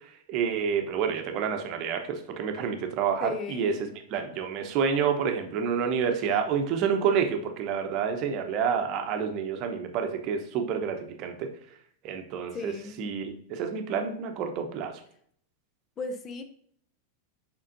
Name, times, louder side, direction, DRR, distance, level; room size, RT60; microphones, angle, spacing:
voice 1, 0.3-11.5 12.0-15.0, right 7 dB, 40° right, 5 dB, 0.9 m, -29 dB
voice 2, 3.2-3.8 12.5-13.0 16.0-16.4, left 4 dB, 30° left, 7 dB, 0.6 m, -36 dB
7.4 x 5.3 x 2.6 m, 0.64 s
figure-of-eight pair, 90°, 0 cm